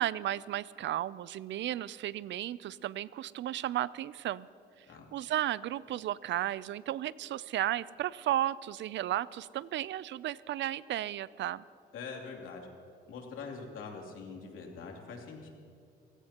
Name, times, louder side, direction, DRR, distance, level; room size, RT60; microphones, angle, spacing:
voice 1, 0.0-4.5 5.1-11.6, right 13 dB, 65° right, 19 dB, 0.5 m, -34 dB
voice 2, 11.9-12.7 13.1-15.5, left 5 dB, 80° left, 0 dB, 2.9 m, -43 dB
29.0 x 16.5 x 2.9 m, 2.4 s
cardioid pair, 90°, 20 cm